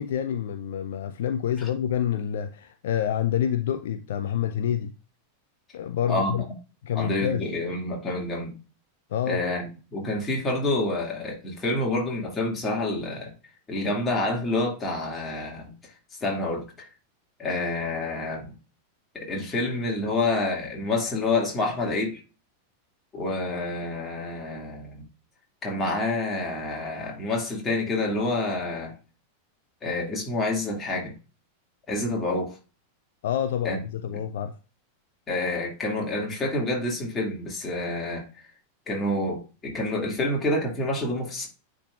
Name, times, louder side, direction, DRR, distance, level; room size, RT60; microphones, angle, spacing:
voice 1, 0.0-4.9 5.7-6.4 6.8-7.4 9.1-9.4 33.2-34.5, left 9 dB, 55° left, 0.4 m, -27 dB
voice 2, 7.0-8.6 9.3-13.3 13.7-15.7 16.2-16.9 17.4-18.6 19.1-22.2 23.1-25.0 25.6-28.9 29.8-31.2 31.9-32.5 33.6-33.8 35.3-38.2 38.9-41.5, left 2 dB, 20° left, 2.3 m, -28 dB
10.0 x 3.8 x 2.4 m
figure-of-eight pair, 90°, 0 cm